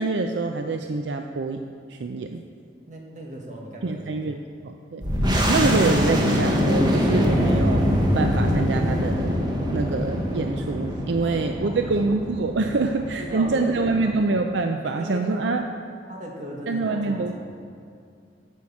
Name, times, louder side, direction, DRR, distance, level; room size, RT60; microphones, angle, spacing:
voice 1, 0.0-1.6 1.9-2.4 3.8-5.0 5.5-9.3 9.7-15.6 16.7-17.4, right 3 dB, 75° right, 5 dB, 0.5 m, -25 dB
voice 2, 2.9-4.4 11.2-12.1 12.8-12.9 13.2-14.2 14.8-15.5 16.1-17.4, right 1 dB, 45° right, -1 dB, 1.7 m, -38 dB
sound 1, 5.0-14.2, equal, 25° right, 1.3 m, -24 dB
9.0 x 6.3 x 7.1 m, 2.4 s
head